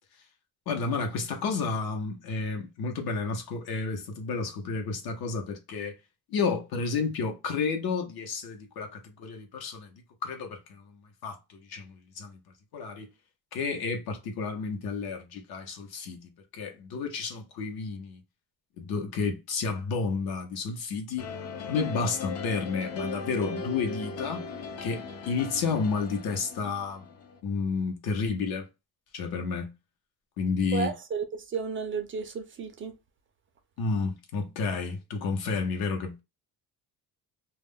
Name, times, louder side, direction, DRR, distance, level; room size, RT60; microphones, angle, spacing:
voice 1, 0.7-5.9 6.3-9.9 10.2-12.4 12.7-13.1 13.5-18.2 18.8-21.3 21.7-24.5 24.8-27.0 27.4-28.7 29.1-29.7 30.4-30.9 33.8-36.2, left 4 dB, 70° left, 0.8 m, -31 dB
sound 1, 21.2-27.4, left 4 dB, 45° left, 0.4 m, -38 dB
voice 2, 30.7-33.0, right 6 dB, 35° right, 0.4 m, -33 dB
2.3 x 2.1 x 3.5 m
cardioid pair, 155°, 38 cm